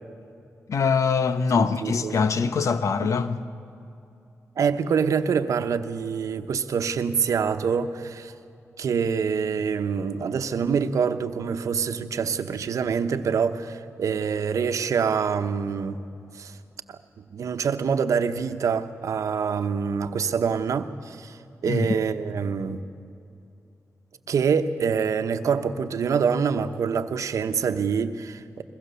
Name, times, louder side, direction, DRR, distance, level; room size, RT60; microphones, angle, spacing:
voice 1, 0.7-3.4 21.7-21.9, left 5 dB, 75° left, 1.0 m, -23 dB
voice 2, 1.6-2.2 3.0-3.1 4.6-8.3 8.8-16.0 16.3-16.6 16.9-17.0 17.3-22.8 24.3-28.6, right 6 dB, 80° right, 1.0 m, -25 dB
22.0 x 21.0 x 6.9 m
cardioid pair, 60°, 5 cm